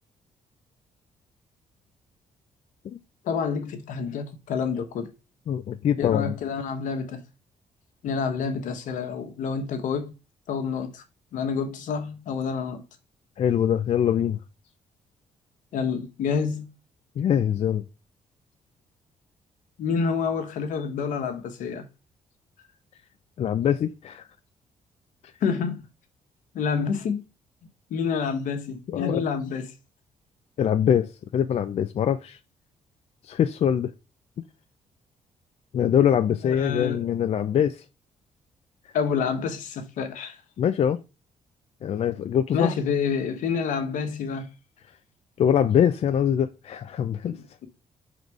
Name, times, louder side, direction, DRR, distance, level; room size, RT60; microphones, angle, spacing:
voice 1, 3.2-5.1 6.0-7.2 8.0-10.1 10.5-11.0 11.3-12.8 15.7-16.7 19.8-21.8 25.4-25.9 26.5-27.2 27.9-29.7 36.4-37.0 38.9-40.4 42.5-44.5 47.2-47.7, left 6 dB, 80° left, 1.2 m, -28 dB
voice 2, 5.5-6.4 13.4-14.4 17.2-17.8 23.4-24.3 25.2-25.3 28.9-29.2 30.6-32.4 33.2-33.9 35.7-37.8 38.8-38.9 40.6-41.0 41.8-42.7 45.4-47.4, left 9 dB, 55° left, 0.5 m, -23 dB
5.0 x 4.0 x 4.7 m
cardioid pair, 85°, 13 cm